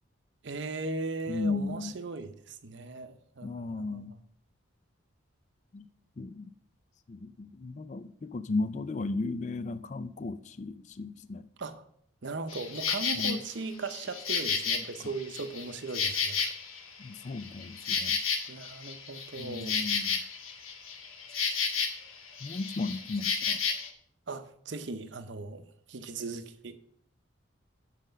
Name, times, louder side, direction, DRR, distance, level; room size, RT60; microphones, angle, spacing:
voice 1, 0.4-4.2 11.6-11.8 12.2-16.5 18.5-20.3 24.3-25.6 25.9-26.8, right 3 dB, 60° right, 0.7 m, -38 dB
voice 2, 1.3-2.0 3.4-4.1 5.7-5.8 6.2-6.5 7.1-11.5 13.2-13.4 17.0-18.2 19.4-20.2 22.4-23.6, left 3 dB, 35° left, 0.3 m, -35 dB
Insect, 12.5-13.4 13.9-16.9 17.2-22.1 22.4-23.9, left 6 dB, 90° left, 1.1 m, -32 dB
7.5 x 5.0 x 6.5 m
head